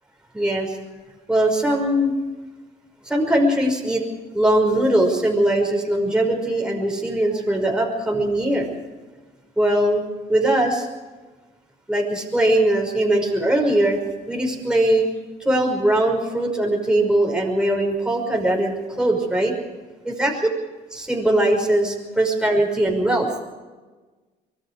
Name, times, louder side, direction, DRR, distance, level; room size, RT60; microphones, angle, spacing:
voice 1, 0.3-0.8 1.3-2.1 3.1-4.0 4.3-8.7 9.6-10.0 10.3-10.9 11.9-14.0 14.3-15.1 15.4-19.5 20.0-20.3 20.9-23.3, right 1 dB, 5° right, 0 dB, 5.6 m, -20 dB
25.0 x 21.5 x 4.9 m, 1.3 s
cardioid pair, 110°, 17 cm